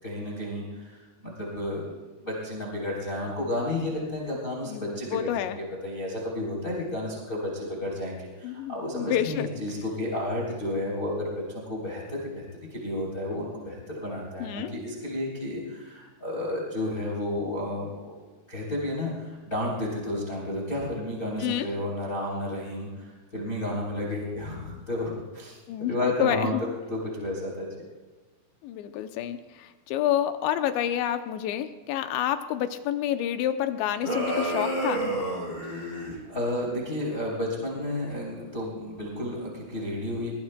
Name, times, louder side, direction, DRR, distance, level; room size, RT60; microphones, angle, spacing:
voice 1, 0.0-1.8 2.2-12.4 12.7-18.2 18.5-23.1 23.3-26.5 26.9-27.7 35.6-40.3, left 1 dB, 20° left, -2 dB, 3.1 m, -32 dB
voice 2, 4.6-5.6 8.4-9.5 14.4-14.7 21.4-21.7 25.7-26.6 28.6-35.0, left 11 dB, 80° left, 8 dB, 2.7 m, -28 dB
sound 1, 34.0-36.2, right 1 dB, 10° right, 4.4 m, -29 dB
22.0 x 20.5 x 2.2 m, 1.3 s
omnidirectional pair, 5.7 m